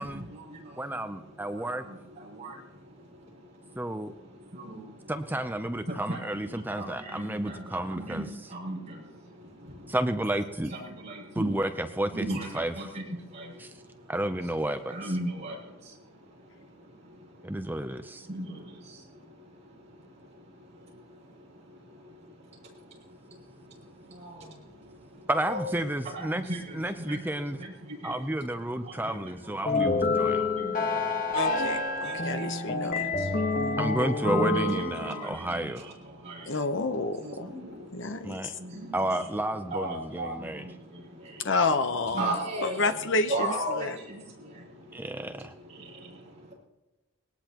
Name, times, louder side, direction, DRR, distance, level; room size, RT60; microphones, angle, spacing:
voice 1, 0.0-5.1 5.8-10.0 10.7-11.5 12.1-14.1 14.9-25.6 26.0-28.4 28.7-31.4 31.9-33.8 34.5-39.2 39.7-41.5 42.1-42.9 43.3-46.5, right 1 dB, 30° right, -3 dB, 6.3 m, -39 dB
voice 2, 0.8-1.8 3.8-4.1 5.1-8.3 9.9-10.7 11.4-12.9 13.6-13.7 14.1-15.1 17.4-18.3 25.3-26.4 26.7-27.6 28.0-30.4 33.8-36.0 38.2-38.5 38.9-40.7 44.9-45.5, right 1 dB, 10° right, 8 dB, 0.6 m, -31 dB
sound 1, 29.7-35.4, left 3 dB, 40° left, 1.5 m, -28 dB
voice 3, 31.3-33.1 36.5-37.5 37.9-38.5 41.4-44.0, left 3 dB, 55° left, 8 dB, 1.0 m, -29 dB
19.5 x 18.5 x 3.0 m, 1.0 s
head